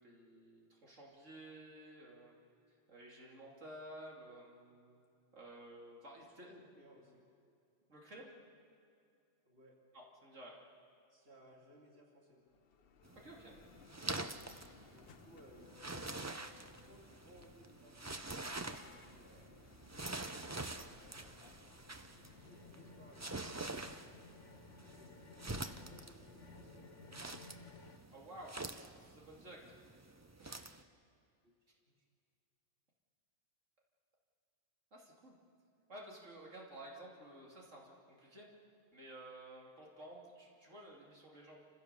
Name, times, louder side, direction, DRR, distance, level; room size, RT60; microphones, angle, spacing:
voice 1, 0.0-2.4 2.9-5.0 5.3-6.5 7.9-8.3 9.9-10.6 13.1-13.6 28.1-29.6 30.4-30.6 34.9-35.3 35.9-38.5 38.9-41.6, right 1 dB, 85° right, -2 dB, 3.3 m, -53 dB
voice 2, 6.4-7.3 9.4-9.8 11.1-12.4 14.9-16.1 16.4-18.4 19.0-21.4 22.2-23.3 24.8-27.3 31.4-32.0, equal, 55° right, -1 dB, 3.0 m, -63 dB
Bell, 12.4-24.2, left 7 dB, 55° left, 1.0 m, -63 dB
sound 1, 13.0-30.8, right 2 dB, 20° right, 0.6 m, -47 dB
sound 2, 19.5-28.0, left 3 dB, 75° left, 1.7 m, -58 dB
28.5 x 16.0 x 6.9 m, 2.5 s
omnidirectional pair, 1.3 m